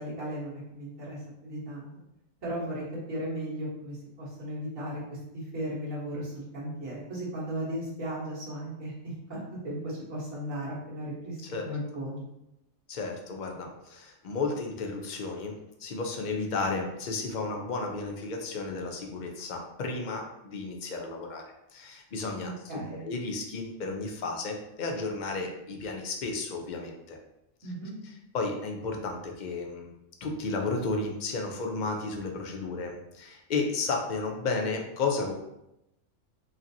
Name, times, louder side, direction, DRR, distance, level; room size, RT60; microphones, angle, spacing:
voice 1, 0.0-1.9 2.4-12.2 22.4-23.1 27.6-28.0, right 1 dB, 85° right, -9 dB, 1.9 m, -36 dB
voice 2, 12.9-21.4 21.7-27.2 28.3-29.9 30.2-35.3, left 3 dB, 50° left, 2 dB, 0.6 m, -33 dB
5.0 x 2.8 x 2.7 m, 0.87 s
omnidirectional pair, 1.3 m